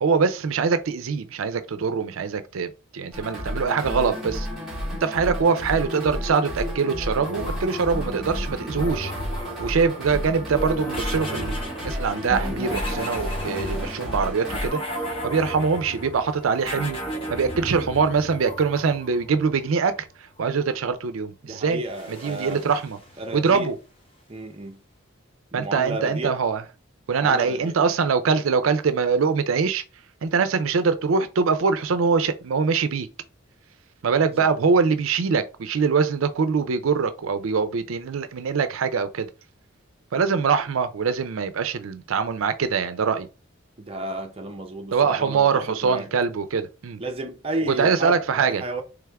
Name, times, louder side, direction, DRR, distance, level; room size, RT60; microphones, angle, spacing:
voice 1, 0.0-4.5 5.0-9.1 9.6-11.6 11.8-14.8 15.2-17.0 17.3-19.9 20.4-21.8 22.1-23.0 23.3-23.8 25.5-26.6 27.1-29.8 30.2-33.1 34.0-39.3 40.1-43.3 44.9-47.0 47.7-48.6, right 5 dB, 80° right, 0.4 m, -23 dB
sound 1, 3.1-14.7, equal, ahead, 1.6 m, -32 dB
sound 2, 7.2-19.8 21.8-23.5, equal, 25° left, 0.9 m, -34 dB
voice 2, 21.4-22.7 23.2-23.7 24.3-24.8 25.5-26.4 27.2-27.7 34.4-34.5 43.8-46.1 47.0-48.8, right 2 dB, 25° right, 0.6 m, -32 dB
3.5 x 3.4 x 3.4 m
head